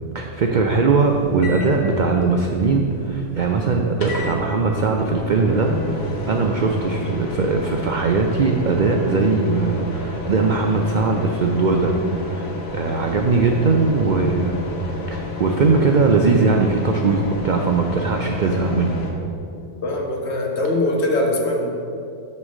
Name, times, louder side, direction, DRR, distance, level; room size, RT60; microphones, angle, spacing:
voice 1, 0.1-11.9 12.2-14.7 15.1-18.9, right 4 dB, 65° right, 2 dB, 0.4 m, -20 dB
sound 1, 1.0-19.1, left 2 dB, 80° left, 1.4 m, -31 dB
voice 2, 19.8-21.7, left 1 dB, 55° left, 0 dB, 1.2 m, -22 dB
9.4 x 3.2 x 6.4 m, 2.6 s
omnidirectional pair, 1.4 m